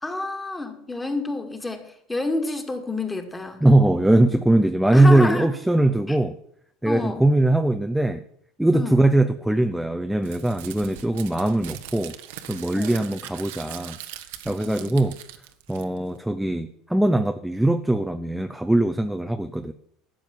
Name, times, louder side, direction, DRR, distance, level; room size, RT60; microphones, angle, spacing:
voice 1, 0.0-3.6 4.9-5.5 6.1-6.2 6.8-7.3 8.7-9.0 12.7-13.0 14.6-15.0, left 2 dB, 15° left, 2.2 m, -29 dB
voice 2, 3.6-6.4 6.8-8.2 8.6-12.1 12.5-14.0 14.5-15.1 15.7-19.7, right 1 dB, 5° right, 0.7 m, -21 dB
Crumpling crinkling, 10.2-16.2, right 12 dB, 80° right, 1.1 m, -41 dB
12.0 x 7.7 x 7.1 m
supercardioid pair, 100°, 0 cm